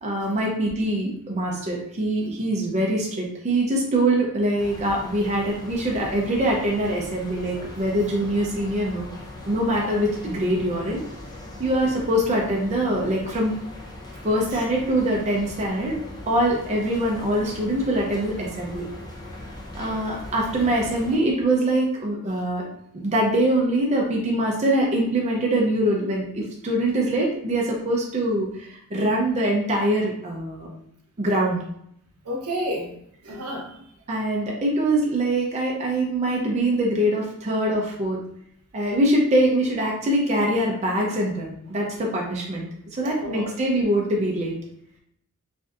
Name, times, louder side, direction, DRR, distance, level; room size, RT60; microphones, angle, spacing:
voice 1, 0.0-9.1 9.5-11.0 11.6-13.5 14.2-18.9 19.7-22.6 23.0-30.7 31.2-31.6 34.1-38.2 38.7-42.7 42.9-44.5, right 1 dB, 30° right, -2 dB, 0.5 m, -23 dB
sound 1, 4.6-21.2, left 1 dB, 15° left, 0.6 m, -40 dB
voice 2, 32.2-32.9 33.2-33.7 43.2-43.5, equal, 75° right, 0 dB, 0.8 m, -30 dB
3.3 x 2.6 x 2.4 m, 0.70 s
head